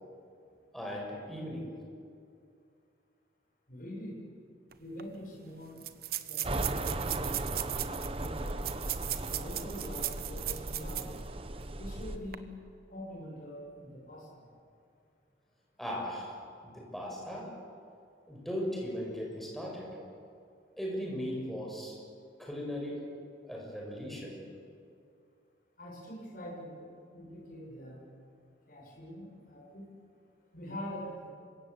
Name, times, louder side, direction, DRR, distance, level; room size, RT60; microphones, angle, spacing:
voice 1, 0.7-1.8 15.8-16.3 16.6-17.6 18.3-20.0 20.8-22.0 22.4-23.1 23.4-24.4, equal, ahead, -2 dB, 6.5 m, -38 dB
voice 2, 3.7-4.2 4.8-5.8 6.3-8.6 9.3-11.1 11.8-12.5 12.9-14.4 25.8-26.9 27.1-28.0 28.7-29.9 30.5-31.3, equal, 50° left, -3 dB, 7.0 m, -44 dB
sound 1, 4.7-4.8 5.0-5.1 5.8-11.2 11.6-11.7 12.2-12.3, right 14 dB, 55° right, 1.1 m, -37 dB
sound 2, 6.4-12.2, right 1 dB, 30° right, 1.2 m, -37 dB
28.0 x 25.0 x 8.3 m, 2.4 s
head